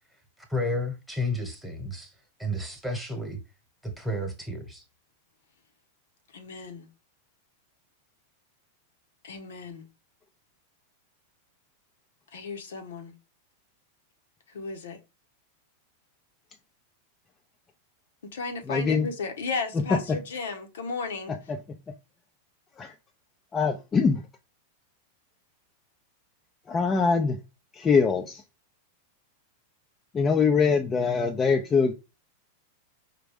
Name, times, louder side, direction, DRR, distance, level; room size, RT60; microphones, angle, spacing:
voice 1, 0.5-2.1 2.4-3.4 3.8-4.8, left 1 dB, ahead, 1.2 m, -31 dB
voice 2, 6.3-6.9 9.2-9.8 12.3-13.1 14.5-15.0 18.3-21.3, left 4 dB, 90° left, 1.0 m, -34 dB
voice 3, 18.7-19.1 19.7-20.2 21.3-21.6 22.8-22.9 23.5-24.2 26.7-27.4 27.7-28.4 30.1-31.9, left 5 dB, 20° left, 0.5 m, -23 dB
5.0 x 2.2 x 3.4 m
supercardioid pair, 130°, 0 cm